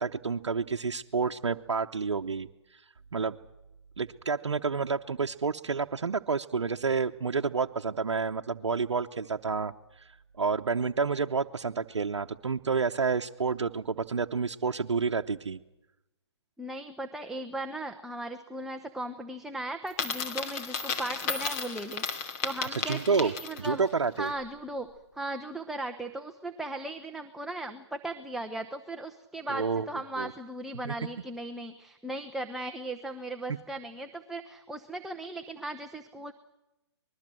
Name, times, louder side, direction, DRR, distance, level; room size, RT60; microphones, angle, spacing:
voice 1, 0.0-2.5 2.7-2.8 3.1-3.4 4.0-10.1 10.4-15.6 22.9-23.3 23.6-24.3 29.5-29.9 30.2-30.3 30.8-30.9, right 5 dB, 85° right, 4 dB, 0.8 m, -29 dB
voice 2, 16.6-23.9 24.2-24.9 25.1-36.3, right 1 dB, ahead, 5 dB, 0.8 m, -37 dB
Coin (dropping), 19.9-23.8, left 5 dB, 35° left, 2.8 m, -34 dB
25.0 x 21.0 x 7.7 m, 0.98 s
hypercardioid pair, 140°, 15 cm